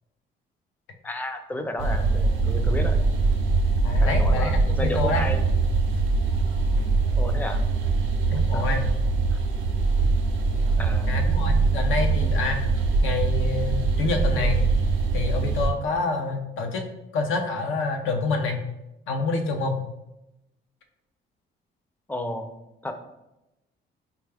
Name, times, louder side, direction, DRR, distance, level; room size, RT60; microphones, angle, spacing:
voice 1, 1.0-3.0 4.0-5.4 7.1-7.6 8.5-8.7 10.7-11.2 22.1-22.5 22.8-22.9, left 1 dB, 10° left, 6 dB, 0.4 m, -32 dB
sound 1, 1.8-15.7, right 3 dB, 75° right, 0.5 m, -23 dB
voice 2, 3.8-5.2 8.3-8.9 11.1-12.6 13.0-14.7 15.1-16.9 17.1-18.6 19.1-19.8, left 3 dB, 85° left, 4 dB, 0.6 m, -27 dB
4.4 x 2.3 x 3.3 m, 0.92 s
cardioid pair, 90°, 20 cm